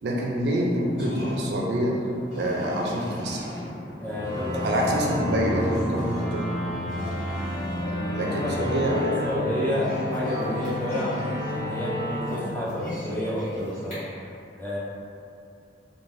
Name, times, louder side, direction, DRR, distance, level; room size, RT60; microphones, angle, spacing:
voice 1, 0.0-2.0 2.3-3.5 4.6-6.8 8.2-9.3, equal, 65° right, -2 dB, 0.4 m, -26 dB
sound 1, 0.8-13.9, left 1 dB, 40° left, 1.4 m, -37 dB
voice 2, 4.0-4.8 5.1-5.3 7.8-14.3 14.5-14.8, left 1 dB, 10° left, -7 dB, 0.4 m, -30 dB
sound 2, 4.2-13.5, left 1 dB, 60° left, 1.1 m, -32 dB
3.1 x 2.2 x 2.6 m, 2.5 s
head